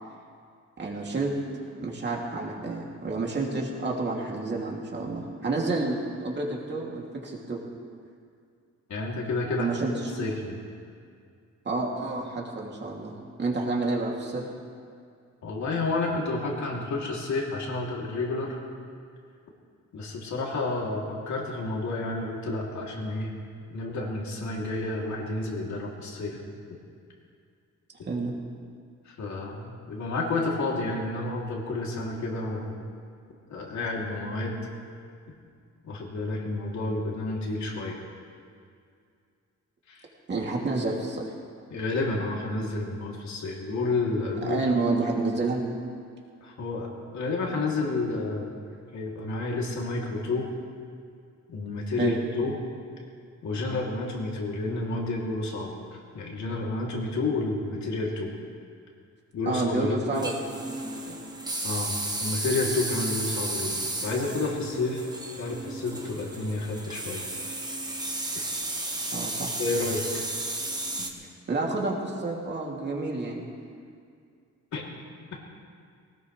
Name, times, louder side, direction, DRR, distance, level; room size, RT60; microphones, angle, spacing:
voice 1, 0.8-1.3 1.7-7.6 9.6-10.2 11.6-14.5 28.1-28.3 40.3-41.3 44.4-45.6 52.0-52.2 59.5-61.3 69.1-69.5 71.5-73.5, right 3 dB, 35° right, -2 dB, 2.6 m, -29 dB
voice 2, 8.9-9.7 10.1-10.6 15.4-18.6 19.9-23.3 23.7-26.4 29.0-32.7 33.5-34.7 35.8-38.0 39.9-40.0 41.7-44.7 46.4-48.5 48.9-50.5 51.5-52.6 53.4-58.3 59.3-60.3 61.6-65.1 65.4-67.2 67.5-67.6 69.6-70.2 71.0-71.1 74.7-74.8, left 2 dB, 70° left, -2 dB, 3.0 m, -30 dB
sound 1, 60.1-71.1, right 2 dB, 15° right, 1.3 m, -33 dB
20.0 x 18.5 x 3.3 m, 2.2 s
cardioid pair, 130°, 29 cm